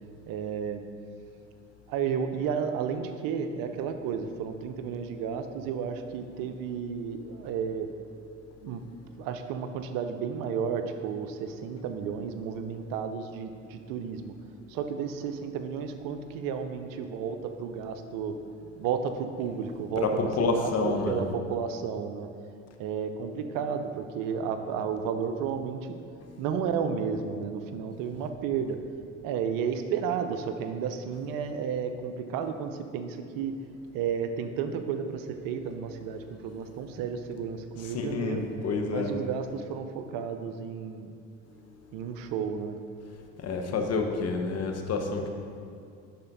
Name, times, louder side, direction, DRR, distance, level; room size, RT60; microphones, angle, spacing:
voice 1, 0.3-0.8 1.9-7.9 8.6-8.8 9.2-14.3 14.7-18.4 18.8-22.3 22.8-26.0 26.4-28.8 29.2-33.5 33.9-38.4 38.9-41.1 41.9-42.8, right 7 dB, 60° right, 8 dB, 0.7 m, -32 dB
voice 2, 20.0-21.2 37.9-39.1 43.4-45.3, left 4 dB, 40° left, 4 dB, 1.0 m, -28 dB
10.5 x 4.3 x 4.0 m, 2.3 s
hypercardioid pair, 60°, 37 cm